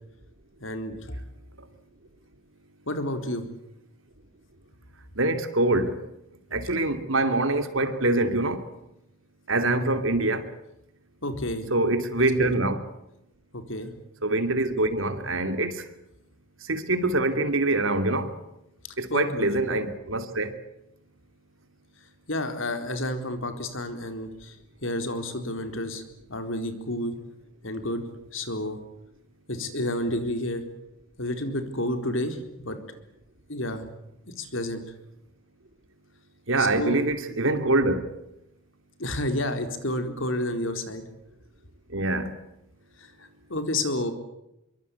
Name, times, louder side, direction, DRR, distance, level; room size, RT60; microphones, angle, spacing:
voice 1, 0.6-1.2 2.9-3.5 11.2-11.7 12.4-12.5 13.5-13.9 19.1-19.6 22.3-24.6 24.8-26.0 26.3-27.1 27.6-28.0 28.3-28.8 29.5-30.6 31.2-32.8 33.5-33.8 34.4-34.8 36.6-37.0 37.3-37.5 39.0-41.0 43.0-44.1, left 1 dB, 70° left, 4.1 m, -30 dB
voice 2, 5.2-6.0 6.5-8.6 9.5-10.5 11.7-12.8 14.2-15.8 16.7-18.3 19.0-20.6 36.5-38.1 41.9-42.3, right 2 dB, 75° right, 2.8 m, -24 dB
25.5 x 23.5 x 8.4 m
head